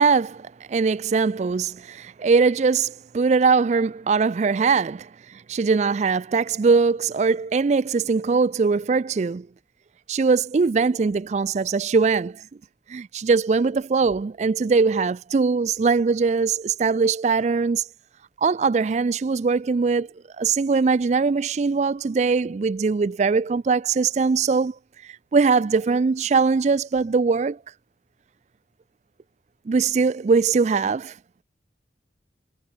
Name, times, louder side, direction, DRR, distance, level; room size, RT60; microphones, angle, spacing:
voice 1, 0.0-9.5 10.1-12.4 12.9-17.8 18.4-20.1 20.4-24.7 25.3-27.6 29.7-31.1, right 4 dB, 40° right, 0.3 m, -21 dB
head